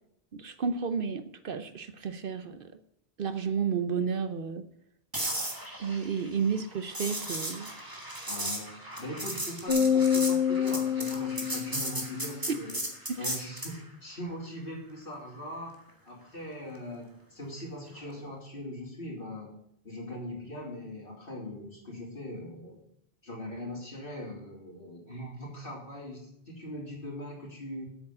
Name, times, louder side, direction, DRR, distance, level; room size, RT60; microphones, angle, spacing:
voice 1, 0.3-2.7 3.2-4.7 5.8-7.7 12.5-12.6 13.1-13.3, right 6 dB, 60° right, 11 dB, 0.9 m, -32 dB
sound 1, 5.1-13.8 18.0-18.2, right 1 dB, 20° right, 2.0 m, -36 dB
voice 2, 8.3-8.7 9.0-12.7 13.2-15.8 16.0-19.5 19.8-22.8 23.2-27.8, left 1 dB, 55° left, -3 dB, 3.6 m, -41 dB
sound 2, 9.7-12.2, left 8 dB, 75° left, 1.8 m, -27 dB
8.5 x 7.3 x 7.3 m, 0.73 s
omnidirectional pair, 1.1 m